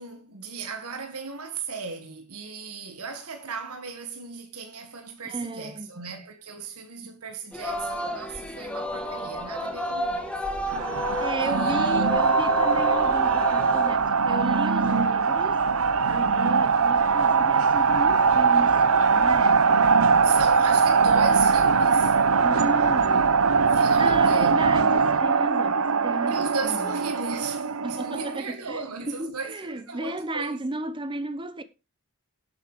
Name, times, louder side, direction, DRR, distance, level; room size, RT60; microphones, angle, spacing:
voice 1, 0.0-10.4 11.4-12.2 20.2-22.2 23.7-24.9 26.3-30.6, right 4 dB, 85° right, 1.7 m, -36 dB
voice 2, 5.2-5.9 7.0-7.1 11.2-15.6 16.1-19.8 22.4-23.4 24.0-26.9 27.8-31.6, right 2 dB, 20° right, 1.1 m, -34 dB
Singing, 7.5-14.0, left 1 dB, 5° left, 1.7 m, -31 dB
sound 1, 10.7-28.4, right 5 dB, 70° right, 0.9 m, -21 dB
11.5 x 8.0 x 4.9 m
head